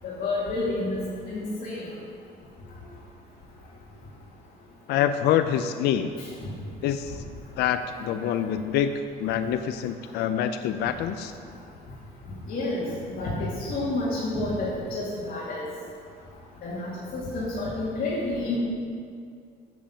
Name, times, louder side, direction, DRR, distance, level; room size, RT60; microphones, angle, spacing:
voice 1, 0.0-1.0 1.3-1.9 6.2-6.3 12.5-12.8 13.1-15.7 16.6-18.6, left 2 dB, 55° left, -8 dB, 2.4 m, -29 dB
voice 2, 4.9-6.1 6.8-7.2 7.6-11.3, left 9 dB, 75° left, 9 dB, 0.5 m, -26 dB
7.6 x 6.9 x 7.4 m, 2.3 s
cardioid pair, 110°, 17 cm